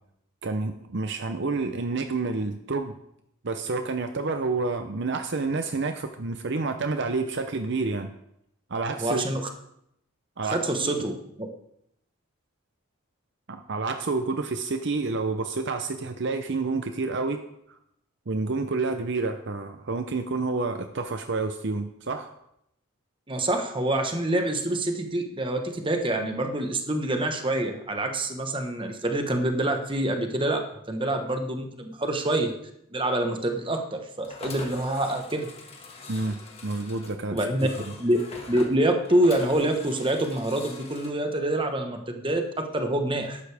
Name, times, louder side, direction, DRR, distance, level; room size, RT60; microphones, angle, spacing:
voice 1, 0.4-3.0 3.4-8.1 8.7-9.2 10.4-10.6 13.5-17.8 18.3-22.3 36.1-37.7, right 3 dB, 50° right, 7 dB, 0.7 m, -29 dB
voice 2, 9.0-9.5 10.4-11.1 11.4-11.5 23.3-30.6 30.9-32.5 32.9-35.5 37.3-37.7 38.0-38.2 38.5-43.4, right 1 dB, 20° right, 5 dB, 1.2 m, -26 dB
sound 1, 34.2-41.1, left 3 dB, 25° left, 1.7 m, -44 dB
13.5 x 11.5 x 3.5 m, 0.77 s
head